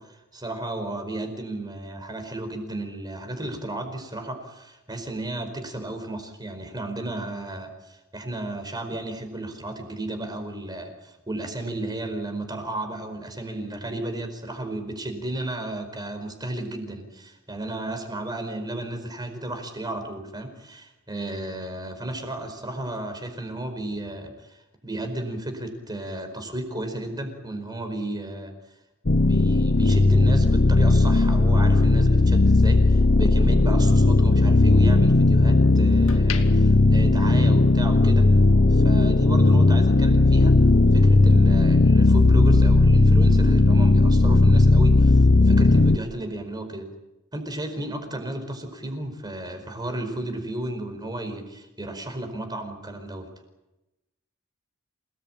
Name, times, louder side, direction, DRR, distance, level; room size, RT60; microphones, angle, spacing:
voice 1, 0.0-28.5 29.2-38.3 38.7-40.6 40.9-46.9 47.3-53.3, right 1 dB, 20° right, 6 dB, 4.9 m, -33 dB
sound 1, 29.1-46.0, left 2 dB, 45° left, 0.8 m, -17 dB
Pool Table Ball Hit, 31.2-33.6 34.0-35.4 35.8-38.0 38.3-38.5, left 6 dB, 65° left, 2.1 m, -40 dB
28.0 x 19.5 x 9.0 m, 1.0 s
head